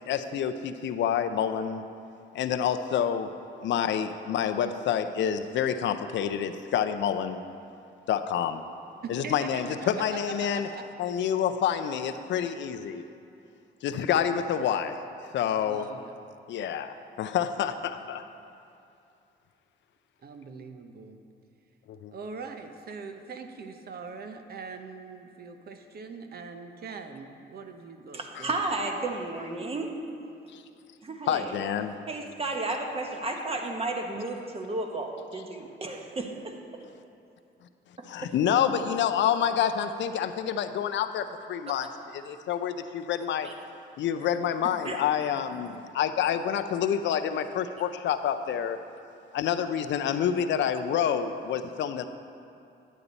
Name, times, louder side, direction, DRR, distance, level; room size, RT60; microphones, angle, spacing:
voice 1, 0.1-1.8 2.3-3.3 3.6-7.4 8.1-8.6 9.1-10.7 11.0-13.0 13.8-15.0 15.3-15.9 16.5-18.2 21.9-22.1 28.4-28.5 30.5-30.6 31.3-32.0 38.1-43.5 44.0-48.8 49.3-52.1, left 8 dB, 70° left, 9 dB, 0.5 m, -28 dB
voice 2, 9.0-10.9 15.6-16.1 20.2-21.2 22.1-28.5, right 5 dB, 50° right, 6 dB, 0.7 m, -42 dB
voice 3, 28.1-30.0 31.0-31.5 32.1-36.6 38.0-38.3 43.4-43.5 44.8-45.0, right 2 dB, 30° right, 3 dB, 1.2 m, -33 dB
9.9 x 8.4 x 4.0 m, 2.6 s
cardioid pair, 90°, 20 cm